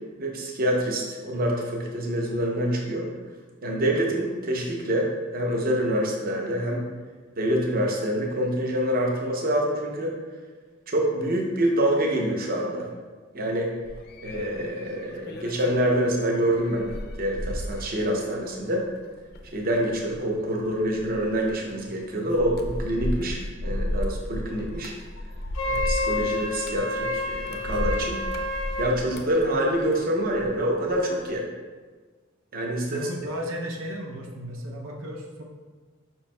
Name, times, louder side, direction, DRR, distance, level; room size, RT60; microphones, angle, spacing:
voice 1, 0.2-3.1 3.6-6.8 7.4-10.2 10.9-12.9 13.3-13.7 14.2-18.9 19.5-24.9 25.7-28.2 28.8-31.5 32.5-33.0, right 1 dB, 45° right, 0 dB, 0.6 m, -26 dB
sound 1, 13.8-30.6 30.9-31.3, left 1 dB, 55° left, 0.4 m, -35 dB
Wind instrument woodwind instrument, 25.5-28.9, left 2 dB, 85° left, 0.7 m, -29 dB
voice 2, 32.9-35.4, equal, 85° right, 0 dB, 0.6 m, -34 dB
5.2 x 4.5 x 2.2 m, 1.4 s
head